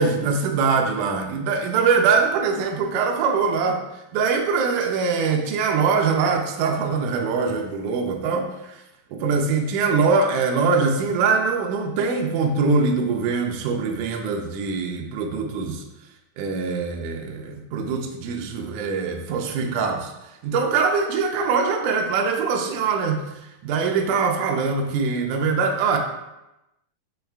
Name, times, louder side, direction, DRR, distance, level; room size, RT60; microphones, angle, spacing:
voice 1, 0.0-3.8 4.1-8.8 9.1-15.8 16.4-20.1 20.4-23.2 23.6-26.0, right 5 dB, 85° right, 2 dB, 1.7 m, -23 dB
6.5 x 2.3 x 3.3 m, 0.93 s
omnidirectional pair, 4.0 m